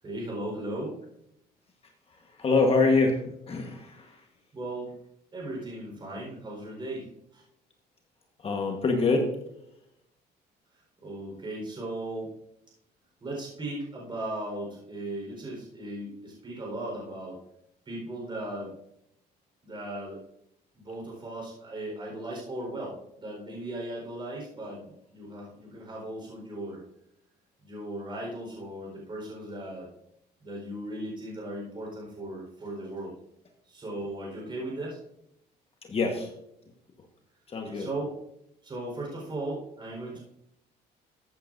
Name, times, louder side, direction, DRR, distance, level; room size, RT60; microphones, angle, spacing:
voice 1, 0.0-1.0 4.5-4.9 5.3-7.4 11.0-12.3 13.2-17.4 17.9-18.7 19.6-20.2 20.7-24.8 25.1-26.8 27.6-29.9 30.4-33.1 33.7-35.0 37.6-38.1 38.6-40.2, right 1 dB, 30° right, -3 dB, 4.3 m, -37 dB
voice 2, 2.4-4.2 8.4-9.3 35.9-36.3 37.5-37.9, left 3 dB, 35° left, 3 dB, 1.3 m, -25 dB
14.0 x 8.6 x 2.6 m, 0.78 s
cardioid pair, 110°, 17 cm